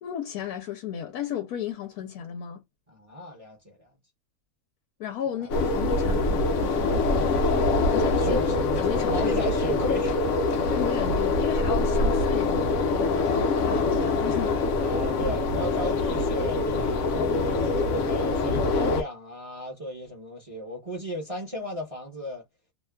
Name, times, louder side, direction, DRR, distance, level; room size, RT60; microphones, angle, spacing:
voice 1, 0.0-2.6 5.0-7.0 7.9-8.4 8.8-9.4 10.7-14.7, left 9 dB, 85° left, 1.1 m, -34 dB
voice 2, 2.9-4.0 5.3-5.5 8.2-8.6 9.1-10.2 14.7-22.4, left 1 dB, 25° right, 0.9 m, -35 dB
sound 1, 5.5-19.0, left 3 dB, 65° left, 0.9 m, -24 dB
2.9 x 2.2 x 2.2 m
omnidirectional pair, 1.6 m